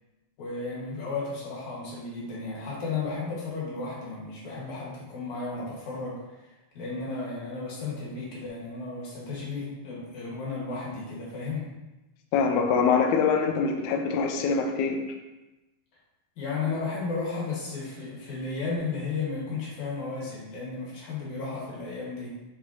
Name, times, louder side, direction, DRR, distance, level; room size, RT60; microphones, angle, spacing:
voice 1, 0.4-11.7 16.4-22.3, left 4 dB, 60° left, -5 dB, 2.8 m, -34 dB
voice 2, 12.3-15.2, left 5 dB, 85° left, 3 dB, 1.7 m, -24 dB
7.7 x 4.8 x 2.8 m, 1.0 s
omnidirectional pair, 4.2 m